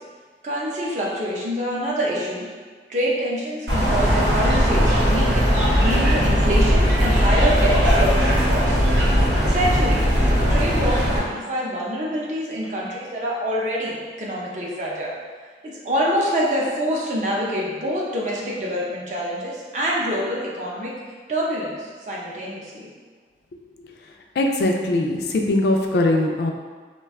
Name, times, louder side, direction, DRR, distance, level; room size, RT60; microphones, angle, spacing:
voice 1, 0.4-2.5 2.9-9.0 9.4-10.0 10.5-15.1 15.6-21.0 21.3-22.9, equal, 40° right, -4 dB, 0.5 m, -26 dB
sound 1, 3.7-11.2, equal, 80° right, 0.8 m, -18 dB
voice 2, 24.4-26.5, left 2 dB, 70° left, 2 dB, 0.3 m, -21 dB
2.4 x 2.2 x 3.4 m, 1.5 s
head